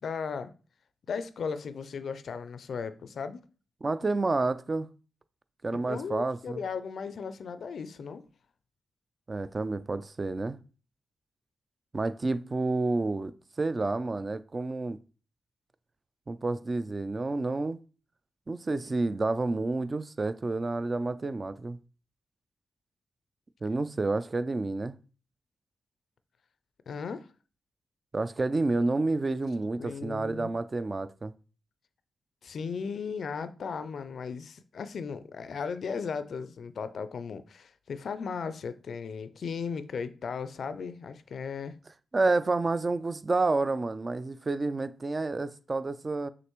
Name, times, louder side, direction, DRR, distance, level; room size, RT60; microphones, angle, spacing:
voice 1, 0.0-0.5 1.1-3.4 5.7-8.2 26.9-27.3 29.8-30.5 32.4-41.8, left 5 dB, 70° left, 0.4 m, -36 dB
voice 2, 3.8-4.9 5.6-6.6 9.3-10.6 11.9-15.0 16.3-17.8 18.5-21.8 23.6-25.0 28.1-31.3 42.1-46.3, right 3 dB, 40° right, 0.4 m, -29 dB
6.3 x 2.5 x 3.0 m
supercardioid pair, 45°, 0 cm